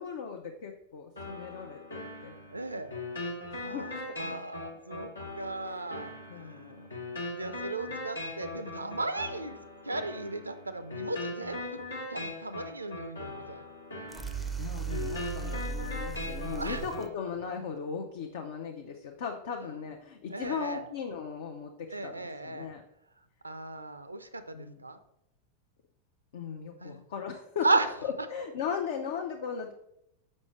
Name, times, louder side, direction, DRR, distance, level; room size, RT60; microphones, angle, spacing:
voice 1, 0.0-2.4 3.5-4.0 5.7-5.9 6.3-7.0 7.9-8.0 14.6-22.8 24.5-24.8 26.3-27.7 28.0-29.7, left 6 dB, 55° left, 3 dB, 0.5 m, -38 dB
sound 1, 1.2-17.1, left 2 dB, 80° left, 1.2 m, -40 dB
voice 2, 2.5-2.9 3.6-3.9 4.2-7.0 7.3-13.7 16.6-16.8 20.3-20.8 21.9-22.7 23.4-25.0 26.8-27.1 27.6-27.9, right 3 dB, 80° right, 12 dB, 0.4 m, -35 dB
sound 2, 14.1-17.1, right 5 dB, 5° right, 0.5 m, -36 dB
6.3 x 5.4 x 3.1 m, 0.79 s
figure-of-eight pair, 90°, 0 cm